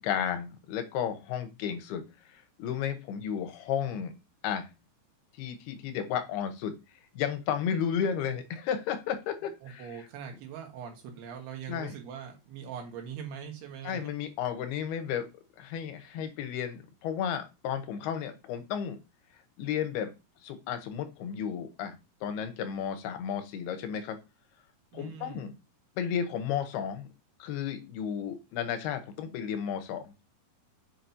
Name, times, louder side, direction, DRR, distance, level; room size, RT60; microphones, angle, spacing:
voice 1, 0.0-2.0 2.3-4.1 4.4-4.7 5.4-6.7 7.2-9.9 11.7-11.9 13.8-15.3 15.6-19.0 19.6-20.1 20.4-22.0 22.2-24.2 24.9-25.5 26.0-27.1 27.4-30.1, left 8 dB, 85° left, 8 dB, 2.9 m, -33 dB
voice 2, 9.6-14.1 24.9-25.4, right 8 dB, 85° right, 3 dB, 3.5 m, -42 dB
7.6 x 5.1 x 2.8 m, 0.26 s
omnidirectional pair, 4.5 m